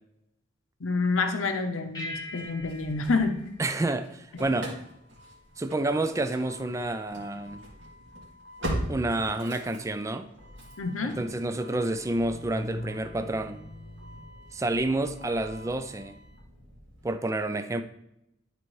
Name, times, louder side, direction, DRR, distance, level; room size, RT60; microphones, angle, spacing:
voice 1, 0.8-3.4 10.8-11.1, left 3 dB, 90° left, 6 dB, 0.7 m, -28 dB
sound 1, 1.9-4.7, left 1 dB, 20° left, 1.1 m, -43 dB
Engine starting / Slam, 2.4-3.8 4.0-17.1, equal, 70° right, 2.5 m, -41 dB
voice 2, 3.6-4.7 5.6-7.6 8.9-10.3 11.0-13.6 14.5-16.2 17.0-17.8, right 2 dB, 15° right, 8 dB, 0.4 m, -29 dB
11.5 x 4.6 x 3.1 m, 0.82 s
head